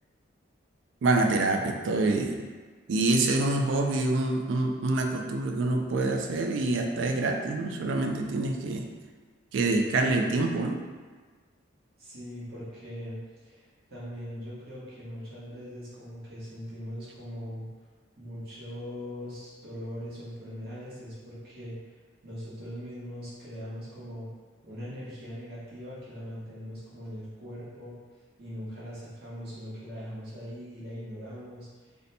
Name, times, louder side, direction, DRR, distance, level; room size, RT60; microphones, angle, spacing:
voice 1, 1.0-2.4 2.9-8.9 9.5-10.8, right 2 dB, 70° right, 3 dB, 0.3 m, -26 dB
voice 2, 12.0-17.7 18.2-21.7 22.2-24.3 24.6-27.9 28.4-31.7, equal, 50° right, -10 dB, 1.0 m, -40 dB
2.7 x 2.1 x 4.0 m, 1.4 s
head